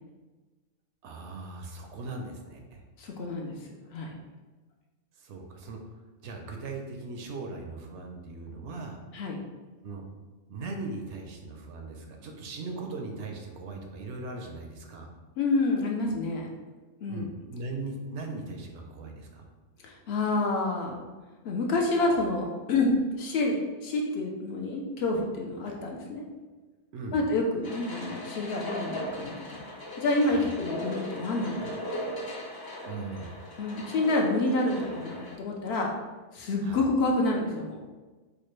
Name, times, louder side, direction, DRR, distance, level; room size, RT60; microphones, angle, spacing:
voice 1, 1.0-2.8 5.2-6.0 6.2-9.0 9.8-10.0 10.5-15.1 17.1-19.5 25.6-25.8 26.9-27.2 30.3-30.5 32.9-33.3 36.6-36.8, right 3 dB, 70° right, 3 dB, 0.8 m, -39 dB
voice 2, 3.0-3.6 3.9-4.1 9.1-9.4 15.4-16.5 17.0-17.3 19.8-21.1 21.4-26.2 27.1-29.6 30.0-31.8 33.6-35.9 36.3-37.8, left 2 dB, 65° left, 0 dB, 0.7 m, -28 dB
sound 1, 27.6-35.3, left 1 dB, 35° left, 0.3 m, -38 dB
4.8 x 2.1 x 3.1 m, 1.3 s
omnidirectional pair, 1.3 m